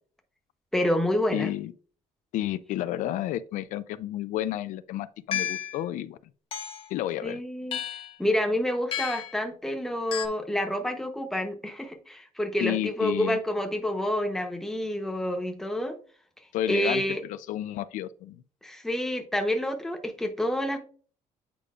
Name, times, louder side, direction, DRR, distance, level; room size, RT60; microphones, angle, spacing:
voice 1, 0.7-1.5 7.2-7.8 8.2-15.9 16.7-17.2 18.6-20.8, left 1 dB, 5° left, 0.8 m, -28 dB
voice 2, 1.3-1.7 2.3-6.2 6.9-7.4 12.6-13.4 16.5-17.0 17.3-18.4, left 13 dB, 75° left, 0.4 m, -31 dB
sound 1, 5.3-5.8 6.5-6.9 7.7-8.1 8.9-9.4 10.1-10.3, left 10 dB, 45° left, 0.9 m, -32 dB
8.4 x 4.9 x 2.4 m
cardioid pair, 170°, 13 cm